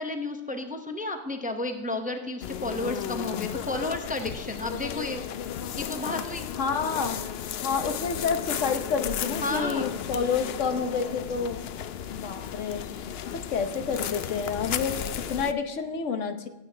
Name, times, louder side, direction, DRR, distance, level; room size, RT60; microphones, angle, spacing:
voice 1, 0.0-5.2 5.8-6.5 9.4-9.9, left 2 dB, 10° right, 5 dB, 0.6 m, -32 dB
sound 1, 2.4-15.5, left 9 dB, 65° left, 0.7 m, -34 dB
voice 2, 6.6-7.2 7.6-11.6 12.1-16.5, left 5 dB, 85° left, 7 dB, 1.3 m, -29 dB
15.5 x 8.4 x 3.3 m, 1.0 s
omnidirectional pair, 1.2 m